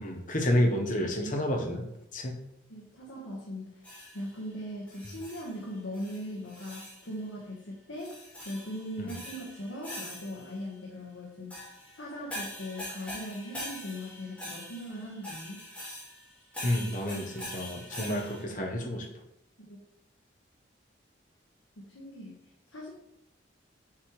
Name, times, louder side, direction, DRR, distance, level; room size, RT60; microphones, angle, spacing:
voice 1, 0.0-1.8 2.1-2.4 9.0-9.1 16.6-19.1, left 1 dB, 40° left, 2 dB, 1.0 m, -29 dB
voice 2, 2.7-3.9 4.1-8.1 8.4-11.6 12.0-15.6 19.6-19.8 21.9-22.4 22.7-22.9, equal, 85° left, -3 dB, 1.2 m, -39 dB
sound 1, 3.8-4.4 4.9-5.7 5.9-7.1 8.0-10.6 11.5-18.4, left 1 dB, 5° left, 2.0 m, -43 dB
7.2 x 4.8 x 3.1 m, 0.82 s
head